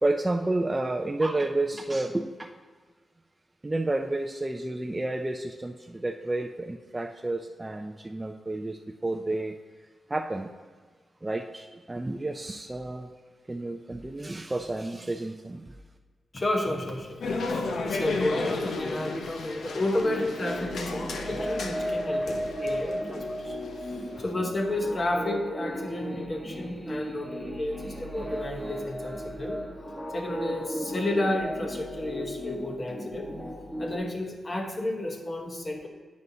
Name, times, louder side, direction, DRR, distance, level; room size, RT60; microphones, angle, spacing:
voice 1, 0.0-2.5 3.6-9.6 10.1-10.5 11.2-13.1 13.5-15.8, right 2 dB, 15° right, 2 dB, 0.3 m, -30 dB
voice 2, 16.3-23.6 24.2-29.6 30.1-33.3 33.8-35.9, left 1 dB, 30° left, 2 dB, 0.9 m, -31 dB
sound 1, 17.2-24.3, left 3 dB, 75° left, 0.6 m, -34 dB
sound 2, 20.0-34.0, equal, 5° left, 1.1 m, -35 dB
9.3 x 5.3 x 2.7 m, 1.5 s
wide cardioid pair, 135°, 0 cm